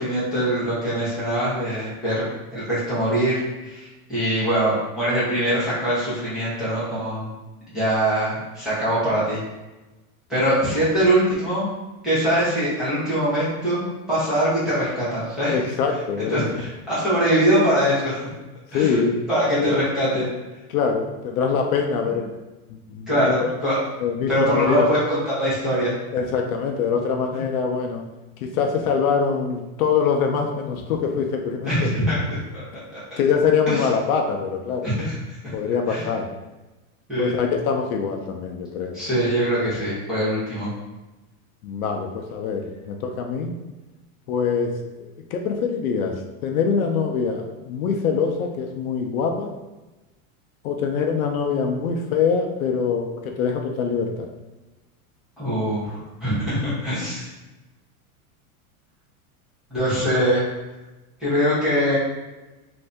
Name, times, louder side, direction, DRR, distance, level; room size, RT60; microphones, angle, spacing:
voice 1, 0.0-2.2 2.5-7.3 7.7-9.4 10.3-11.7 12.0-13.8 14.1-15.6 16.3-18.2 18.7-19.0 19.3-20.3 23.1-23.8 24.3-26.0 31.6-32.4 33.7-33.8 34.8-35.5 35.9-36.1 37.1-37.4 38.9-40.7 55.4-57.3 59.7-60.4 61.2-62.0, equal, ahead, -13 dB, 0.7 m, -22 dB
voice 2, 15.5-16.4 18.7-19.2 19.6-19.8 20.7-22.3 22.9-23.5 24.0-24.9 26.1-28.0 28.4-31.9 33.2-34.9 35.5-36.3 37.2-39.0 41.6-43.5 44.3-44.7 45.0-49.5 50.6-54.3, left 6 dB, 70° left, 3 dB, 0.6 m, -24 dB
2.7 x 2.6 x 3.3 m, 1.1 s
supercardioid pair, 175°, 45 cm